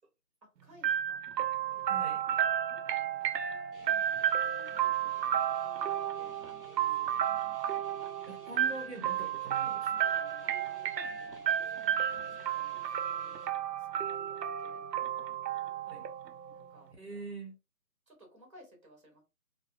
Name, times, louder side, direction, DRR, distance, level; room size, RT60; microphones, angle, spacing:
voice 1, 0.4-1.2 1.5-3.9 4.2-5.5 5.8-7.1 10.4-14.8 16.5-16.9 18.1-19.2, equal, 20° right, 0.9 m, -60 dB
sound 1, 0.8-16.6, right 10 dB, 85° right, 0.6 m, -32 dB
voice 2, 1.9-2.2 8.2-9.9 15.9-16.0 17.0-17.5, right 3 dB, 45° right, 0.7 m, -43 dB
sound 2, 3.7-13.5, left 2 dB, 45° left, 1.2 m, -58 dB
2.6 x 2.3 x 2.3 m
figure-of-eight pair, 165°, 48 cm